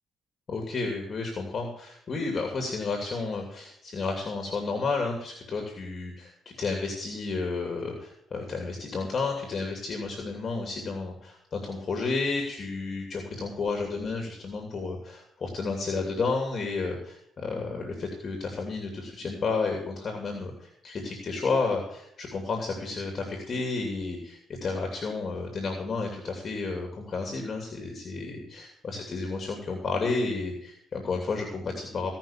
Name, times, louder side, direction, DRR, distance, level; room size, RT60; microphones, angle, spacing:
voice 1, 0.5-32.2, left 4 dB, 45° left, 2 dB, 2.8 m, -31 dB
16.5 x 5.9 x 7.3 m, 0.76 s
cardioid pair, 90°, 0 cm